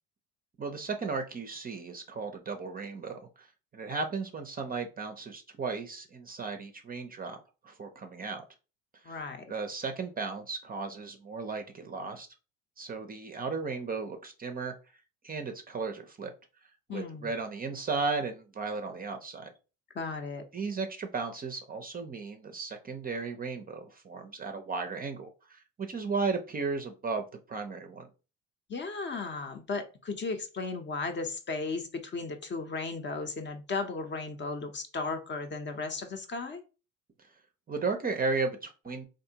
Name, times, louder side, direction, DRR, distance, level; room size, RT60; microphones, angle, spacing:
voice 1, 0.6-3.5 3.7-8.4 9.0-9.2 9.5-12.3 12.8-14.7 15.2-16.3 16.9-19.5 20.5-28.1 37.7-39.0, right 4 dB, 25° right, 6 dB, 0.5 m, -35 dB
voice 2, 9.1-9.4 16.9-17.3 19.9-20.4 28.7-36.6, left 4 dB, 30° left, 6 dB, 0.6 m, -35 dB
3.5 x 2.6 x 2.7 m, 0.32 s
hypercardioid pair, 70°, 39 cm